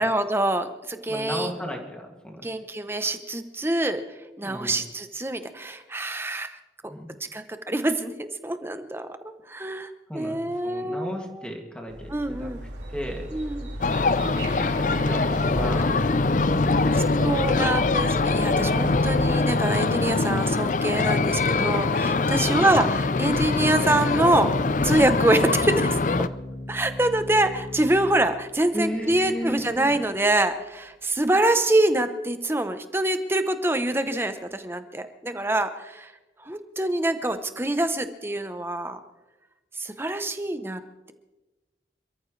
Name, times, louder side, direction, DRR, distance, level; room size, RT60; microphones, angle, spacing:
voice 1, 0.0-1.6 2.4-4.0 4.4-6.6 7.3-9.1 9.5-11.5 12.1-12.6 13.3-13.7 16.6-24.5 24.8-25.9 26.7-36.1 36.4-39.0 39.8-40.8, right 1 dB, 15° right, 9 dB, 0.8 m, -25 dB
voice 2, 1.1-2.5 4.4-4.8 6.8-7.1 10.1-10.4 10.6-12.5 12.9-13.3 13.8-17.6 22.4-22.8 28.7-30.0, equal, 5° left, 1 dB, 2.3 m, -35 dB
sound 1, 11.9-19.5, equal, 90° right, 4.4 m, -36 dB
sound 2, 13.8-26.3, left 3 dB, 45° left, 0.5 m, -23 dB
Organ, 22.7-31.4, left 1 dB, 80° left, 1.6 m, -40 dB
27.5 x 14.0 x 3.3 m, 1.1 s
head